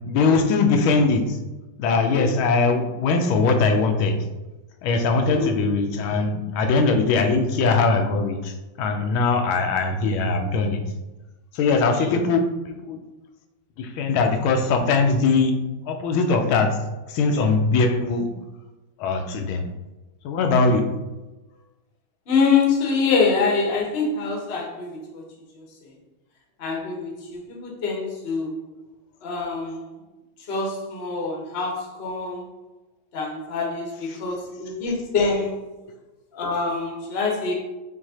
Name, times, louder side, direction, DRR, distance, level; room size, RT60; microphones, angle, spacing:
voice 1, 0.1-1.4 1.8-4.2 4.8-10.8 11.5-13.0 13.8-15.5 15.9-16.7 17.1-18.3 19.0-19.7 20.2-20.8 34.1-34.2, left 4 dB, 85° left, 4 dB, 1.4 m, -21 dB
voice 2, 5.2-5.7 12.0-12.2 22.3-25.2 25.5-25.6 26.6-28.6 29.2-29.8 30.5-32.5 33.1-35.5 36.3-37.5, left 4 dB, 45° left, -1 dB, 0.8 m, -25 dB
5.7 x 2.7 x 2.8 m, 1.1 s
omnidirectional pair, 2.2 m